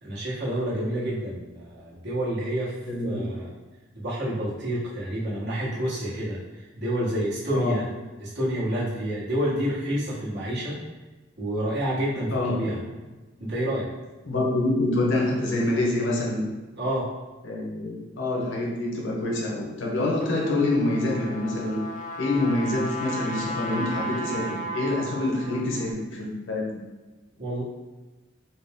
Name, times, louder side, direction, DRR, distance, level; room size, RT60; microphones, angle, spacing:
voice 1, 0.0-3.5 3.9-7.9 8.2-10.8 11.4-12.8 13.4-13.8 16.8-17.0 27.4-27.6, right 1 dB, 60° right, -8 dB, 1.3 m, -28 dB
voice 2, 2.9-3.3 7.5-7.8 12.3-12.8 14.3-16.5 17.4-21.9 22.2-26.8, left 2 dB, 70° left, -2 dB, 0.8 m, -26 dB
Trumpet, 19.9-25.9, equal, 40° left, 0.4 m, -35 dB
4.3 x 2.1 x 3.6 m, 1.2 s
head